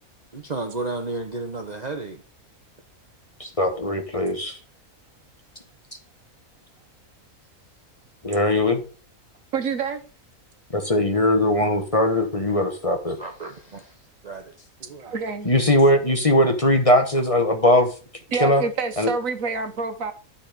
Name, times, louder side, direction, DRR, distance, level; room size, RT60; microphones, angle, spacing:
voice 1, 0.3-2.2 13.2-14.0 14.2-15.1, right 3 dB, 35° right, 0.9 m, -33 dB
voice 2, 3.4-4.6 8.2-8.8 10.7-13.2 15.4-17.9 18.3-18.6 19.0-19.1, left 1 dB, 25° left, 1.2 m, -20 dB
voice 3, 9.5-10.0 15.0-15.5 18.3-20.1, right 5 dB, 65° right, 1.5 m, -27 dB
12.0 x 4.2 x 5.1 m
omnidirectional pair, 1.5 m